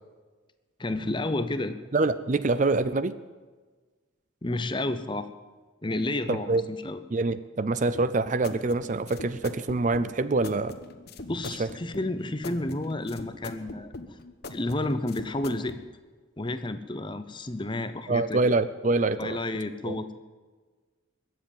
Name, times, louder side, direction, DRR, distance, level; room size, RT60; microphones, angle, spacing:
voice 1, 0.8-1.8 4.4-5.3 5.8-7.0 11.3-14.2 14.5-15.8 16.4-18.4 19.2-20.1, left 2 dB, 25° left, 11 dB, 0.8 m, -31 dB
voice 2, 1.9-3.1 6.3-6.6 7.1-10.7 11.6-11.7 18.1-19.4 19.9-20.1, right 3 dB, 35° right, 15 dB, 0.5 m, -25 dB
sound 1, 7.9-15.8, left 2 dB, 50° left, 1.0 m, -42 dB
21.5 x 7.7 x 8.8 m, 1.4 s
head